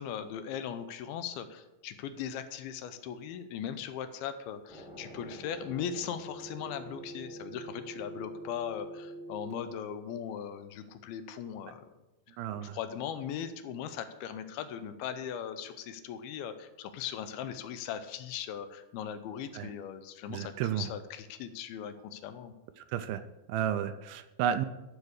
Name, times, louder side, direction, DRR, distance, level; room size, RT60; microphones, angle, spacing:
voice 1, 0.0-11.9 12.3-22.5, left 8 dB, 80° left, 10 dB, 2.5 m, -39 dB
sound 1, 4.7-9.5, right 1 dB, 5° right, 0.5 m, -45 dB
voice 2, 12.4-12.8 19.5-19.7 20.3-20.9 22.9-23.2 23.5-24.7, right 9 dB, 80° right, 11 dB, 2.3 m, -32 dB
11.5 x 4.8 x 6.4 m, 1.0 s
omnidirectional pair, 4.4 m